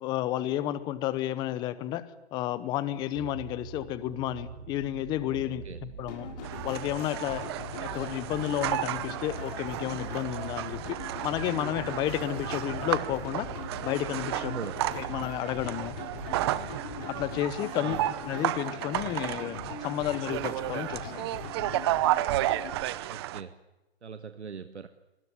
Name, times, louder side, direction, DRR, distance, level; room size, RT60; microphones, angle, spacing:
voice 1, 0.0-2.0 2.3-6.3 6.6-7.4 7.8-13.5 13.8-14.5 15.0-15.9 17.1-21.3, left 13 dB, 15° left, 17 dB, 0.9 m, -32 dB
sound 1, 2.9-18.5 19.3-19.4, right 6 dB, 55° right, 2.8 m, -45 dB
voice 2, 5.4-5.8 14.4-14.8 17.8-18.1 23.1-23.5 24.0-24.9, right 6 dB, 85° right, 10 dB, 1.6 m, -40 dB
sound 2, 6.1-22.7, left 5 dB, 40° left, 6.3 m, -42 dB
sound 3, 6.4-23.4, right 15 dB, 25° right, 0.9 m, -33 dB
23.5 x 20.0 x 9.8 m, 1.1 s
hypercardioid pair, 150°, 33 cm